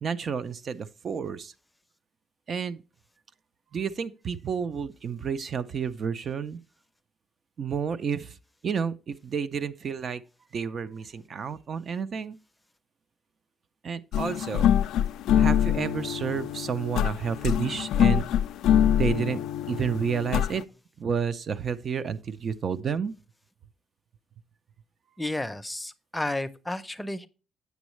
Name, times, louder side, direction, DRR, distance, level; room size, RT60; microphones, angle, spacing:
voice 1, 0.0-1.5 2.5-2.8 3.7-6.6 7.6-8.4 8.6-10.2 10.5-12.4 13.8-14.7 15.4-18.3 18.9-19.4 19.7-20.6 21.0-23.1, right 6 dB, 55° right, 0.4 m, -30 dB
sound 1, 14.1-20.6, left 10 dB, 85° left, 0.3 m, -24 dB
voice 2, 25.2-27.3, left 1 dB, 10° left, 0.5 m, -32 dB
8.0 x 6.2 x 3.1 m
cardioid pair, 90°, 0 cm